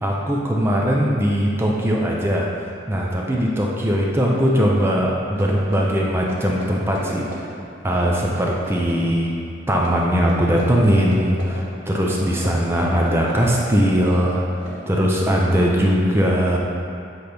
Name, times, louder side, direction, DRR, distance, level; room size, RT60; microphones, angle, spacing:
voice 1, 0.0-2.5 2.9-7.3 7.8-9.3 9.7-14.4 14.9-16.6, equal, 10° right, -3 dB, 0.5 m, -20 dB
sound 1, 4.9-5.0 5.4-7.6 7.9-9.2 9.8-11.7 12.1-15.3, right 1 dB, 75° right, 0.9 m, -36 dB
7.8 x 4.1 x 3.4 m, 2.7 s
head